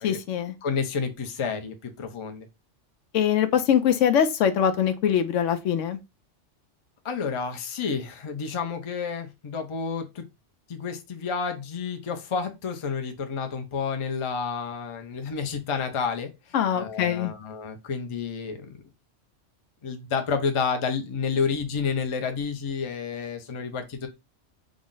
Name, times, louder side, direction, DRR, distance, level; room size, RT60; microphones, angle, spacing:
voice 1, 0.0-0.5 3.1-6.0 16.5-17.3, left 9 dB, 80° left, 0.9 m, -23 dB
voice 2, 0.6-2.5 7.0-10.2 10.7-18.8 19.8-24.1, left 5 dB, 40° left, 0.4 m, -30 dB
3.7 x 2.1 x 3.7 m
omnidirectional pair, 1.3 m